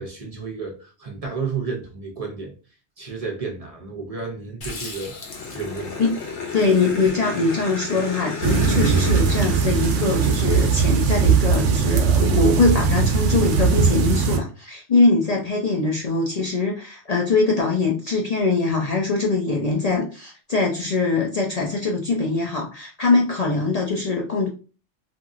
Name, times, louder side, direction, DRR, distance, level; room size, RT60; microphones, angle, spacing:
voice 1, 0.0-2.5 3.0-5.1 5.5-6.0, right 4 dB, 40° right, 1 dB, 0.6 m, -31 dB
Growling, 4.6-11.3, left 4 dB, 80° left, 1.1 m, -33 dB
voice 2, 6.5-24.5, left 3 dB, 55° left, -1 dB, 0.4 m, -22 dB
sound 1, 8.4-14.4, right 6 dB, 85° right, 0.9 m, -19 dB
2.9 x 2.6 x 2.4 m, 0.35 s
omnidirectional pair, 1.2 m